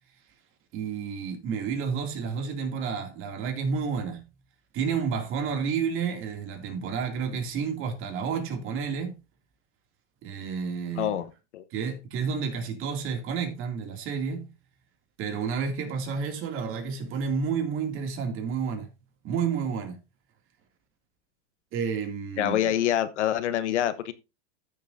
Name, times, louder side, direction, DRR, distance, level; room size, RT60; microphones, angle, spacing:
voice 1, 0.7-4.3 4.7-9.2 10.2-11.2 11.7-14.5 15.2-18.9 19.2-20.0 21.7-22.7, right 6 dB, 35° right, 2.5 m, -30 dB
voice 2, 11.0-11.3 11.5-11.6 22.4-24.1, left 11 dB, 80° left, 1.1 m, -26 dB
14.0 x 6.5 x 2.6 m
supercardioid pair, 135°, 34 cm